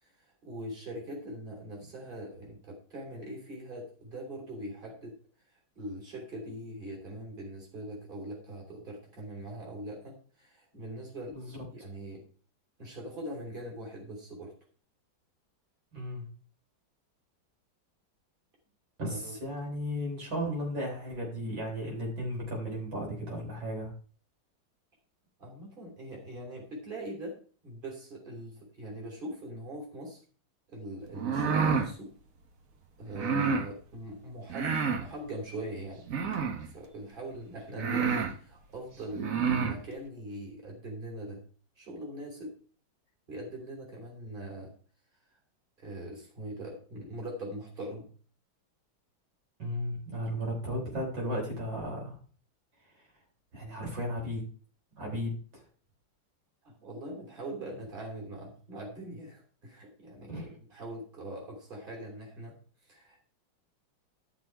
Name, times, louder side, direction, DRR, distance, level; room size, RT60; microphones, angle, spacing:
voice 1, 0.0-5.1 5.5-11.4 11.7-12.3 12.8-14.5 19.0-19.4 25.4-30.2 30.7-32.1 33.0-36.1 36.6-41.4 41.8-42.6 43.3-44.7 45.3-45.4 45.8-48.1 56.6-62.6 62.8-63.3, right 1 dB, 25° right, -1 dB, 3.4 m, -42 dB
voice 2, 15.9-16.3 19.0-23.9 49.6-52.2 53.5-54.4 55.0-55.6 60.3-60.5, equal, 70° right, -2 dB, 4.3 m, -35 dB
sound 1, 31.1-31.9 33.1-33.7 34.5-35.1 36.1-36.7 37.3-37.4 37.8-38.3 39.1-39.8, right 6 dB, 50° right, 1.2 m, -28 dB
12.0 x 6.2 x 4.5 m, 0.42 s
omnidirectional pair, 2.2 m